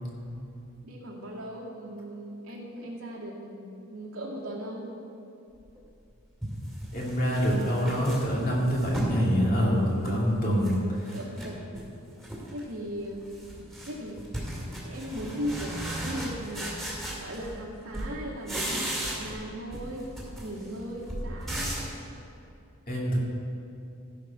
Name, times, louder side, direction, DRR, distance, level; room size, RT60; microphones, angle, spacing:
voice 1, 0.8-4.9 10.4-11.7 12.5-13.2 13.8-14.3 14.8-20.1 20.4-21.7, equal, 85° right, -3 dB, 2.0 m, -38 dB
sound 1, 5.8-5.9 6.4-9.2 9.6-10.8 11.0-11.9 12.2-12.6 12.9-17.7 17.9-19.4 19.7-22.0, right 1 dB, ahead, 2.3 m, -36 dB
voice 2, 6.9-10.8 22.9-23.2, equal, 40° left, -4 dB, 2.2 m, -25 dB
15.0 x 5.3 x 5.6 m, 2.7 s
head